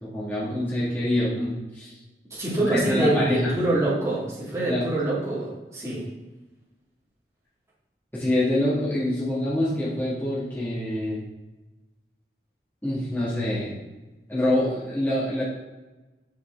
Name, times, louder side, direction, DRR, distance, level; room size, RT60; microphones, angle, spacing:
voice 1, 0.0-1.9 2.6-3.5 4.7-4.8 8.1-11.2 12.8-13.8 14.3-15.4, left 1 dB, 10° left, -9 dB, 2.1 m, -26 dB
voice 2, 2.3-6.1, right 2 dB, 15° right, -8 dB, 2.5 m, -25 dB
6.6 x 5.8 x 3.8 m, 1.1 s
head